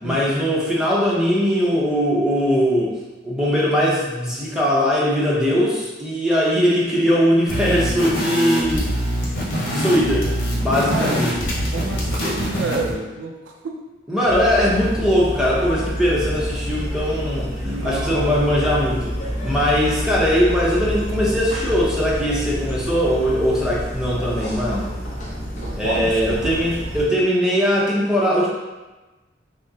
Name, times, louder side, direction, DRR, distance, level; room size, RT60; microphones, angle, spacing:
voice 1, 0.0-2.9 3.2-8.9 9.7-11.3 14.1-19.1 19.4-24.9 25.8-28.5, equal, 5° right, -6 dB, 0.7 m, -20 dB
sound 1, 7.5-12.9, equal, 70° left, 1.2 m, -24 dB
voice 2, 10.9-11.2 11.7-13.8 17.6-18.4 25.6-26.5, right 3 dB, 80° right, 1 dB, 0.5 m, -29 dB
sound 2, 14.3-27.0, equal, 40° left, 0.8 m, -28 dB
6.2 x 2.1 x 2.7 m, 1.1 s
head